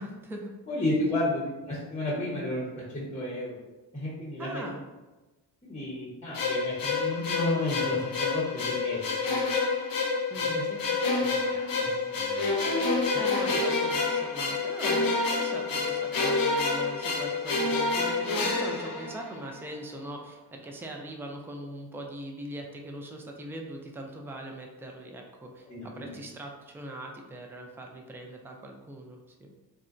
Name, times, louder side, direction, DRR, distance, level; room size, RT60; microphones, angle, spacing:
voice 1, 0.0-0.5 4.4-4.8 10.0-10.7 13.1-25.7 25.9-29.5, right 1 dB, 5° right, 1 dB, 0.3 m, -41 dB
voice 2, 0.7-3.5 3.9-4.6 5.6-9.5 10.3-12.5 25.6-26.2, left 1 dB, 15° left, -5 dB, 0.9 m, -33 dB
sound 1, 6.3-19.6, left 3 dB, 50° left, 0.8 m, -28 dB
3.7 x 2.2 x 2.5 m, 1.1 s
cardioid pair, 80°, 45 cm